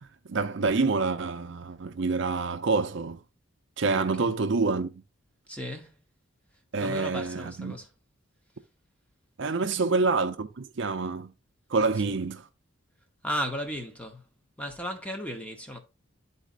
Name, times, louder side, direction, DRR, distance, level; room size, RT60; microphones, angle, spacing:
voice 1, 0.0-3.2 3.8-5.0 6.7-7.8 9.4-11.3 11.7-12.5, right 4 dB, 60° right, 0.5 m, -27 dB
voice 2, 5.5-6.0 6.8-7.9 9.8-9.9 13.2-14.2 14.6-15.8, equal, 5° left, 0.9 m, -35 dB
11.5 x 4.1 x 2.5 m
head